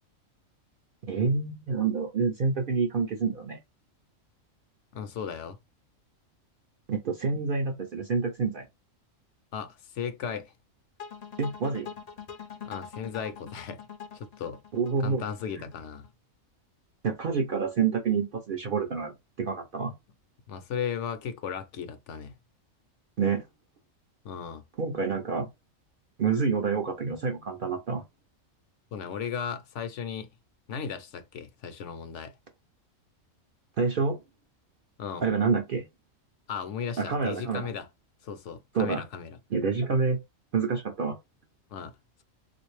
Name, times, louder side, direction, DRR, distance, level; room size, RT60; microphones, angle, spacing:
voice 1, 1.1-3.6 6.9-8.7 11.4-11.9 14.7-15.2 15.6-15.7 17.0-19.9 23.2-23.5 24.8-25.5 26.2-28.0 33.8-34.2 35.2-35.8 37.0-37.7 38.7-39.0 39.5-40.2 40.5-41.2, right 5 dB, 60° right, 0.6 m, -27 dB
voice 2, 4.9-5.6 9.5-10.5 12.6-13.8 14.1-14.6 15.0-16.1 20.5-22.3 24.2-24.6 28.9-30.3 30.7-32.3 35.0-35.3 36.5-37.9 38.2-39.4 41.7-41.9, left 7 dB, 70° left, 0.8 m, -36 dB
sound 1, 11.0-16.1, left 7 dB, 55° left, 0.4 m, -43 dB
3.4 x 2.5 x 3.1 m
omnidirectional pair, 1.4 m